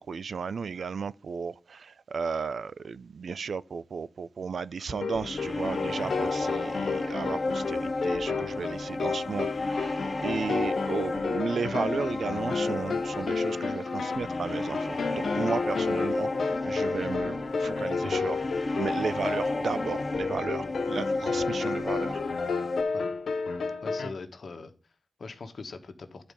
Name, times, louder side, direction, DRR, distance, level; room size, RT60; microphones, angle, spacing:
voice 1, 0.1-1.8 2.1-18.4 18.7-22.2, right 5 dB, 80° right, 0.4 m, -34 dB
sound 1, 4.9-24.1, left 4 dB, 90° left, 1.1 m, -32 dB
sound 2, 5.1-22.8, left 3 dB, 40° left, 1.8 m, -32 dB
voice 2, 23.8-26.3, left 4 dB, 70° left, 1.2 m, -42 dB
11.0 x 4.4 x 5.2 m
wide cardioid pair, 75°, 0 cm